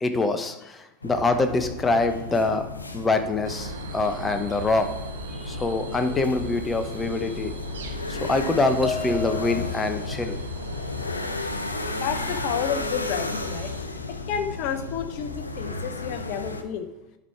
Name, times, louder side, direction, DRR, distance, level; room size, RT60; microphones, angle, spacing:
voice 1, 0.0-2.6 2.9-4.9 5.3-7.6 8.1-10.4, left 3 dB, 15° left, 7 dB, 0.9 m, -25 dB
sound 1, 1.0-16.6, left 3 dB, 80° left, 0.6 m, -33 dB
sound 2, 3.4-13.8, right 5 dB, 70° right, 0.9 m, -40 dB
sound 3, 8.8-10.0, left 3 dB, 10° right, 0.8 m, -33 dB
voice 2, 11.9-13.7 14.3-16.9, left 8 dB, 50° left, 9 dB, 0.8 m, -30 dB
11.0 x 4.7 x 4.5 m, 0.94 s
figure-of-eight pair, 80°, 0 cm